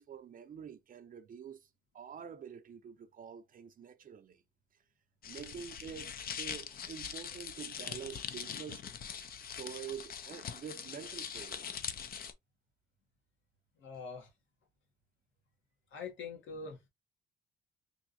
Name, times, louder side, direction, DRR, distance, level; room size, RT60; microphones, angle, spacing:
voice 1, 0.0-1.7 1.9-4.4 5.3-8.8 9.1-9.3 9.6-11.7, right 7 dB, 45° right, 0.6 m, -47 dB
sound 1, 5.2-12.3, left 7 dB, 50° left, 0.6 m, -42 dB
voice 2, 13.8-14.3 15.9-16.8, left 5 dB, 75° left, 1.6 m, -44 dB
3.5 x 2.7 x 2.7 m
cardioid pair, 90°, 20 cm